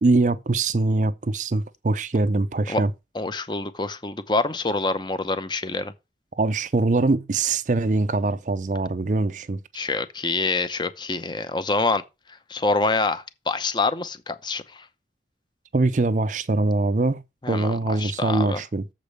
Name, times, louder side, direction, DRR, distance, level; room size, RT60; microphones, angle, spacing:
voice 1, 0.0-2.9 6.4-9.6 15.7-17.2 17.5-18.8, right 2 dB, 45° right, 0.5 m, -23 dB
voice 2, 3.1-5.9 9.7-12.0 12.5-14.9 17.4-18.6, left 3 dB, 25° left, 0.7 m, -26 dB
7.3 x 5.1 x 6.6 m
head